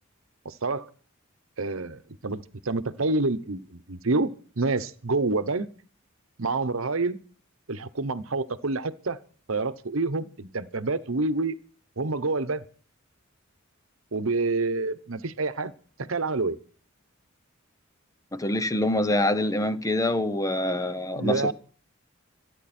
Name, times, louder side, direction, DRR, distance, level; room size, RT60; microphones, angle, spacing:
voice 1, 0.4-0.9 1.6-4.3 4.6-5.7 6.4-7.2 7.7-9.2 9.5-11.5 12.0-12.6 14.1-15.7 16.0-16.6 21.1-21.5, right 3 dB, 80° right, 1.0 m, -27 dB
voice 2, 18.3-21.5, left 1 dB, 15° left, 0.7 m, -25 dB
26.0 x 9.8 x 4.4 m
head